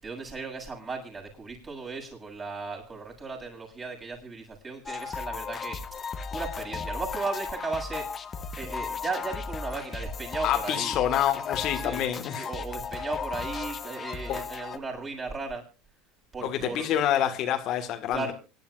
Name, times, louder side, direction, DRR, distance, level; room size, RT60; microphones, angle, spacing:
voice 1, 0.0-8.1 8.6-11.0 11.7-12.0 12.3-15.6 16.3-16.9 18.1-18.3, right 4 dB, 25° right, 7.3 m, -36 dB
sound 1, 4.9-14.8, left 5 dB, 25° left, 1.3 m, -35 dB
voice 2, 10.4-12.5 14.3-14.4 16.4-18.3, left 10 dB, 50° left, 1.7 m, -27 dB
26.0 x 11.5 x 2.5 m
supercardioid pair, 120°, 0 cm